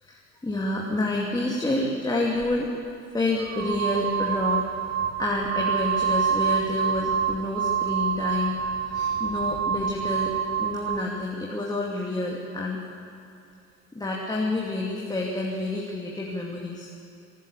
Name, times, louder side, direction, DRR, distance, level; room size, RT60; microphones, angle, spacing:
voice 1, 0.0-2.7 3.1-8.5 8.8-10.3 10.6-12.8 13.9-17.0, left 2 dB, 10° left, -2 dB, 2.6 m, -28 dB
sound 1, 2.4-2.6 3.4-11.1, right 7 dB, 30° right, 0.9 m, -27 dB
24.0 x 14.0 x 8.2 m, 2.6 s
figure-of-eight pair, 70°, 42 cm